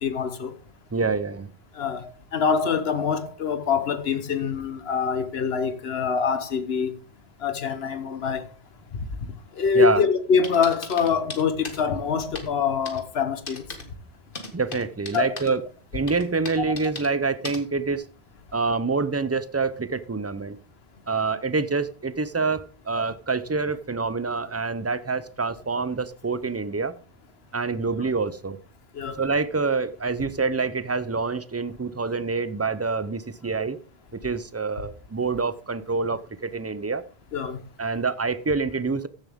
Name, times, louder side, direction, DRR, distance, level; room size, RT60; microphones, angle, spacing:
voice 1, 0.0-0.5 1.7-7.0 7.4-8.4 8.9-13.7 15.1-15.4 23.0-23.1 28.9-29.2 37.3-37.6, left 6 dB, 75° left, 1.2 m, -25 dB
voice 2, 0.9-1.5 9.7-10.0 14.5-15.6 15.9-18.0 18.5-20.6 21.1-26.9 27.5-28.6 29.2-33.8 34.2-37.0 37.8-39.1, right 4 dB, 25° right, 0.3 m, -26 dB
sound 1, 10.4-11.8 12.4-12.5 12.9-13.0 13.5-13.8 14.4-15.5 16.1-17.1 17.4-17.6, left 3 dB, 55° left, 1.8 m, -36 dB
14.5 x 7.1 x 3.6 m
omnidirectional pair, 1.1 m